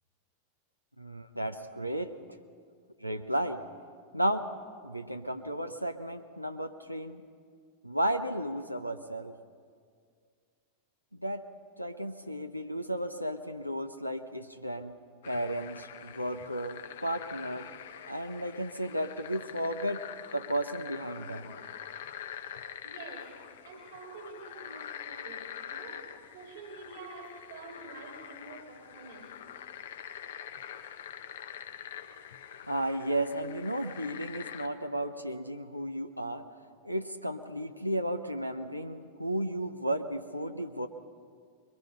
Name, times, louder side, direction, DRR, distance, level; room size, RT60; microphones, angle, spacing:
voice 1, 1.0-2.2 3.0-3.6 4.1-4.5 4.8-7.2 7.8-9.3 11.2-11.4 11.8-15.0 15.2-17.7 18.1-20.0 20.3-21.5 32.7-36.4 36.8-40.9, right 1 dB, 90° right, 6 dB, 0.8 m, -33 dB
sound 1, 15.2-34.7, left 9 dB, 60° left, 1.1 m, -45 dB
voice 2, 22.8-29.3, right 4 dB, 60° right, 1 dB, 2.5 m, -48 dB
23.5 x 22.5 x 5.6 m, 2.1 s
figure-of-eight pair, 90°, 0 cm